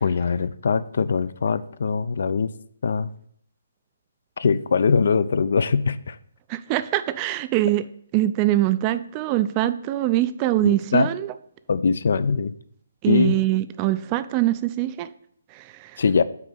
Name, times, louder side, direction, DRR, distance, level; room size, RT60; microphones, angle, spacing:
voice 1, 0.0-2.5 2.8-3.1 4.4-6.2 10.6-11.1 11.7-12.5 13.1-13.4 16.0-16.2, left 5 dB, 60° left, 16 dB, 0.3 m, -22 dB
voice 2, 6.5-7.9 8.1-11.3 13.0-15.1 15.5-16.0, right 14 dB, 25° right, 13 dB, 0.3 m, -23 dB
6.1 x 4.2 x 5.5 m, 0.66 s
figure-of-eight pair, 140°, 0 cm